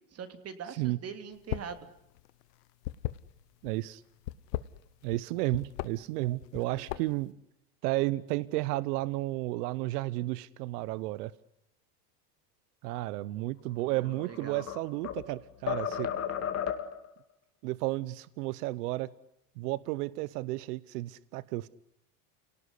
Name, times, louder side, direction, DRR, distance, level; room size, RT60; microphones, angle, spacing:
voice 1, 0.1-1.9 6.7-7.1 13.7-14.7, right 7 dB, 30° right, 9 dB, 3.0 m, -43 dB
sound 1, 1.4-1.8 2.1-3.7 4.2-5.2 5.5-5.9 6.4-7.3, left 16 dB, 85° left, 1.2 m, -36 dB
voice 2, 3.6-4.0 5.0-7.3 7.8-11.3 12.8-16.1 17.6-19.1 19.6-21.7, right 18 dB, 75° right, 19 dB, 1.0 m, -32 dB
sound 2, 13.9-15.3 15.7-17.1, left 9 dB, 30° left, 2.5 m, -34 dB
28.0 x 18.5 x 9.8 m, 0.79 s
supercardioid pair, 130°, 47 cm